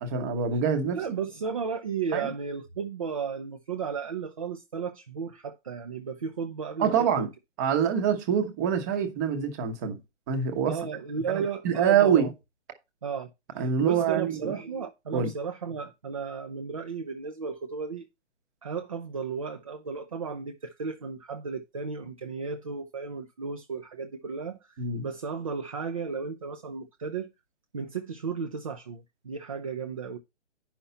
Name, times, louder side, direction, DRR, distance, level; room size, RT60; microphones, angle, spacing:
voice 1, 0.0-1.0 2.1-2.3 6.8-7.3 7.6-10.0 10.3-10.8 11.3-12.3 13.6-14.6 15.1-15.3 24.8-25.1, right 7 dB, 15° right, 1.1 m, -25 dB
voice 2, 0.9-7.3 10.7-12.3 13.0-18.1 18.6-27.3 27.7-30.2, right 5 dB, 30° right, 0.7 m, -34 dB
9.7 x 5.8 x 4.1 m
figure-of-eight pair, 145°, 36 cm